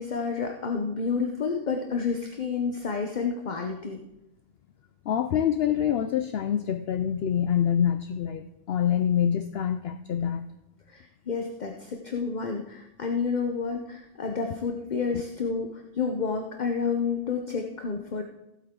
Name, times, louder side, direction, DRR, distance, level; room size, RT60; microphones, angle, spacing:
voice 1, 0.0-4.0 10.9-18.2, left 5 dB, 40° left, 4 dB, 0.7 m, -30 dB
voice 2, 5.1-10.5 15.1-15.2, left 9 dB, 75° left, 9 dB, 0.5 m, -26 dB
15.5 x 8.2 x 3.7 m, 0.87 s
omnidirectional pair, 1.6 m